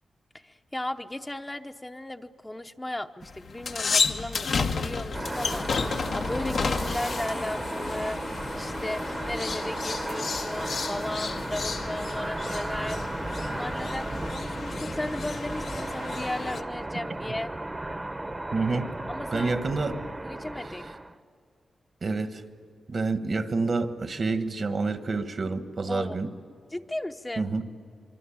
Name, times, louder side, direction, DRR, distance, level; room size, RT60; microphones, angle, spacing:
voice 1, 0.3-13.0 13.5-17.5 19.1-19.6 20.2-20.8 25.9-26.2 26.7-27.5, left 1 dB, 15° left, 6 dB, 0.8 m, -36 dB
sound 1, 3.2-16.6, left 4 dB, 70° left, 1.2 m, -32 dB
sound 2, 5.1-21.1, right 1 dB, 20° right, 1.0 m, -34 dB
voice 2, 18.5-18.9 19.3-20.0 22.0-22.4 22.9-26.3 27.4-27.6, right 3 dB, 50° right, 10 dB, 1.4 m, -28 dB
25.0 x 24.0 x 8.7 m, 2.4 s
cardioid pair, 85°, 0 cm